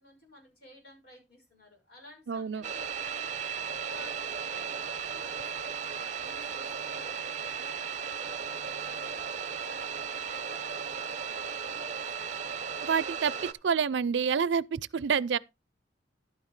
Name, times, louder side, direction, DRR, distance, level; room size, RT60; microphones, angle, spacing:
voice 1, 0.0-3.4 3.8-11.4 11.6-12.5, left 1 dB, 60° left, 6.0 m, -54 dB
voice 2, 2.3-2.6 12.8-13.3 13.6-15.4, right 6 dB, 75° right, 0.5 m, -27 dB
sound 1, 2.6-13.5, right 7 dB, 45° right, 0.8 m, -36 dB
11.5 x 9.6 x 3.2 m
head